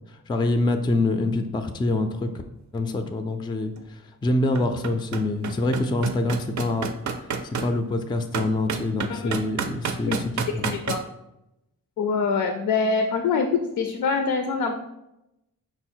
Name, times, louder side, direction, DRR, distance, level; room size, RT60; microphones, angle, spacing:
voice 1, 0.1-2.3 2.7-6.9 7.4-10.8, left 2 dB, 15° left, 7 dB, 0.3 m, -25 dB
sound 1, 3.8-3.9 4.3-7.7 8.3-11.0, right 6 dB, 60° right, 0.5 m, -29 dB
voice 2, 9.1-9.4 10.1-10.2 10.5-11.0 12.0-14.8, left 5 dB, 85° left, 5 dB, 0.5 m, -25 dB
5.3 x 2.0 x 4.4 m, 0.89 s
cardioid pair, 80°, 33 cm